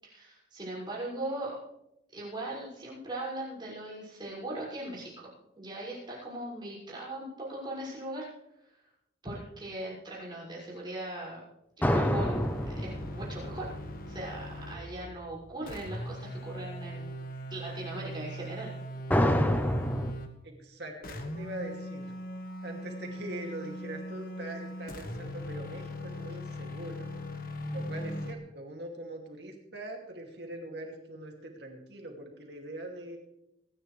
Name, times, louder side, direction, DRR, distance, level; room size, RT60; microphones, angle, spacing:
voice 1, 0.0-1.6 2.1-5.3 5.6-8.3 9.2-11.4 11.8-12.5 12.8-13.7 14.0-17.0 17.5-18.7, right 1 dB, 25° right, -6 dB, 6.4 m, -39 dB
sound 1, 11.8-14.8 19.1-20.1, equal, 10° left, 0.8 m, -28 dB
sound 2, 11.9-15.2 15.7-20.4 21.0-28.3, equal, 50° left, 1.4 m, -40 dB
voice 2, 20.4-22.1 22.6-27.1 27.7-33.2, right 1 dB, 60° right, 1 dB, 2.6 m, -42 dB
26.0 x 10.5 x 3.4 m, 0.84 s
head